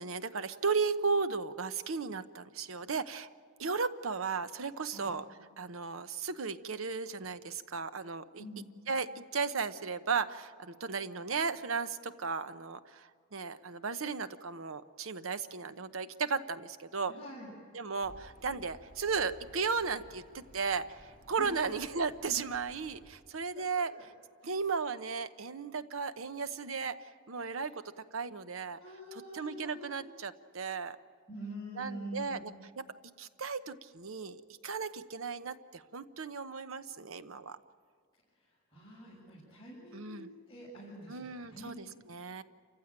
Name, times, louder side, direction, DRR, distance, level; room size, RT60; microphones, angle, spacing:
voice 1, 0.0-3.3 3.6-5.2 5.6-8.4 8.9-17.1 17.7-23.9 24.4-27.7 28.1-28.8 29.1-31.0 31.8-32.5 32.8-37.6 39.9-40.3 41.1-42.4, right 5 dB, 85° right, 12 dB, 0.9 m, -35 dB
voice 2, 17.1-17.5 21.4-21.7 23.6-23.8 24.4-24.5 27.5-27.7 28.8-30.0 31.3-32.4 38.4-40.2 40.5-41.7, equal, 20° left, -10 dB, 7.7 m, -46 dB
Accelerating revving vroom, 18.0-23.1, equal, 50° right, 3.9 m, -57 dB
28.0 x 15.5 x 8.9 m, 2.1 s
head